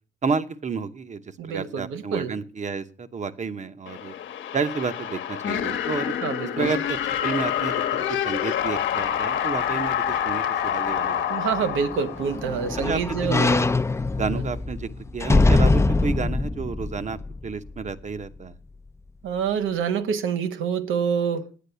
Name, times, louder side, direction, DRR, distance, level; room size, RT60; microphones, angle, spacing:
voice 1, 0.2-4.1 4.5-6.1 6.6-7.0 7.2-11.3 11.6-11.8 12.8-13.7 14.1-18.6, right 5 dB, 35° right, 1.0 m, -31 dB
voice 2, 1.4-2.3 6.2-6.7 11.3-13.5 19.2-21.4, right 6 dB, 85° right, 1.1 m, -26 dB
sound 1, 3.9-12.7, left 9 dB, 75° left, 1.1 m, -27 dB
sound 2, 11.6-17.9 18.4-18.5, left 3 dB, 15° left, 0.5 m, -23 dB
10.0 x 8.9 x 6.8 m
cardioid pair, 90°, 20 cm